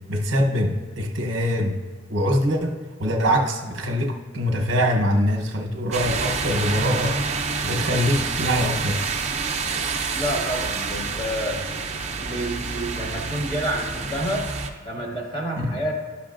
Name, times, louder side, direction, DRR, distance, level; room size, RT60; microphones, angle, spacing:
voice 1, 0.1-1.8 2.1-9.0 15.6-15.7, equal, 65° right, 2 dB, 0.9 m, -23 dB
sound 1, 5.9-14.7, right 4 dB, 35° right, 0.6 m, -28 dB
voice 2, 10.1-11.8 12.2-14.5 14.8-15.9, equal, 25° left, -2 dB, 1.6 m, -29 dB
12.0 x 5.8 x 2.5 m, 1.5 s
head